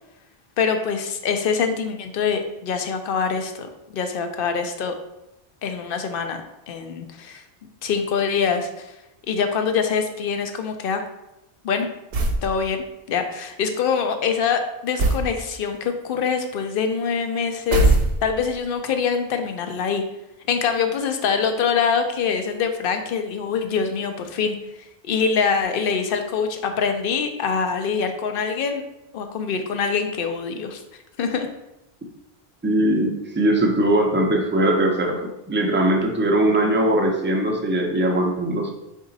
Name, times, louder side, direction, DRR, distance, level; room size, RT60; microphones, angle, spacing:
voice 1, 0.6-4.9 5.6-6.4 6.7-7.4 7.8-8.9 9.3-11.0 11.6-11.9 12.4-20.0 20.5-24.5 25.0-28.8 29.1-30.8 31.2-31.5, left 6 dB, 65° left, 6 dB, 0.7 m, -24 dB
sound 1, 12.1-12.5 15.0-15.3 17.7-18.5, right 2 dB, 65° right, 0.8 m, -19 dB
voice 2, 32.6-38.7, right 1 dB, 15° right, 1 dB, 0.4 m, -20 dB
4.9 x 2.7 x 3.8 m, 0.91 s
omnidirectional pair, 1.1 m